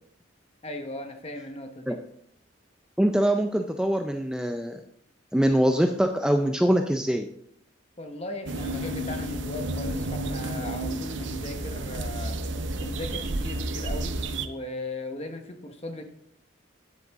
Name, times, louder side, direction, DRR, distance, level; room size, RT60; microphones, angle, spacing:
voice 1, 0.6-2.0 8.0-12.4 12.8-14.2 14.4-16.0, left 2 dB, 30° left, 5 dB, 1.1 m, -37 dB
voice 2, 3.0-4.8 5.3-7.3, equal, 5° right, 5 dB, 0.4 m, -23 dB
sound 1, 8.5-14.5, right 1 dB, 70° right, 0.7 m, -31 dB
9.9 x 7.9 x 3.6 m, 0.68 s
head